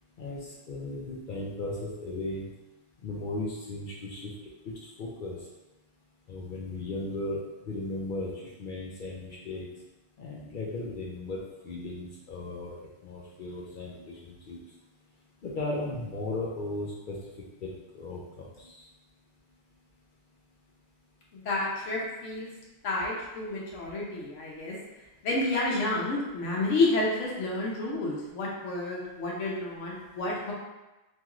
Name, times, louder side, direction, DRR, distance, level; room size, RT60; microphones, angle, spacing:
voice 1, 0.7-2.5 3.0-4.3 5.0-5.4 6.3-7.4 7.7-9.7 10.2-12.7 13.0-14.6 15.4-17.2 17.6-18.8, left 2 dB, 60° left, -4 dB, 0.5 m, -36 dB
voice 2, 21.3-22.5 22.8-24.8 25.2-30.5, left 2 dB, 80° left, -3 dB, 1.0 m, -30 dB
3.0 x 2.9 x 2.4 m, 1.0 s
omnidirectional pair, 1.2 m